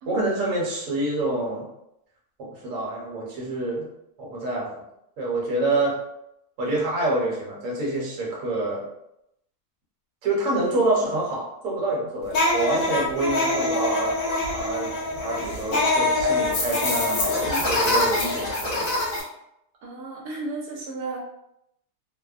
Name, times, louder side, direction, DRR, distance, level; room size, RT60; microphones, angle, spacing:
voice 1, 0.1-1.7 2.4-3.9 4.2-4.8 5.2-6.0 6.6-8.8 10.2-14.2 14.5-18.9, right 2 dB, 60° right, -3 dB, 1.1 m, -27 dB
sound 1, 12.3-19.2, left 2 dB, 65° left, 1.1 m, -24 dB
voice 2, 19.8-21.2, right 3 dB, 85° right, -3 dB, 1.2 m, -34 dB
2.7 x 2.0 x 2.4 m, 0.81 s
omnidirectional pair, 1.7 m